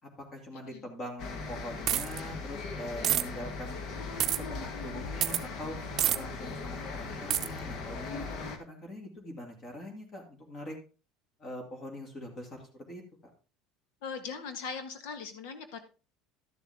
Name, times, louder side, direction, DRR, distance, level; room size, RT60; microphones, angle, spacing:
voice 1, 0.0-3.8 4.5-5.8 6.2-10.8 11.4-13.3, left 1 dB, 30° left, 2 dB, 2.7 m, -43 dB
sound 1, 1.2-8.6, left 4 dB, 55° left, 1.6 m, -39 dB
sound 2, 1.9-2.2 3.0-3.2 4.2-4.4 5.2-5.4 6.0-6.2 7.3-7.5, right 11 dB, 45° right, 0.6 m, -27 dB
voice 2, 14.0-15.8, left 5 dB, 75° left, 8 dB, 1.6 m, -39 dB
12.5 x 7.0 x 3.6 m, 0.34 s
supercardioid pair, 130°, 0 cm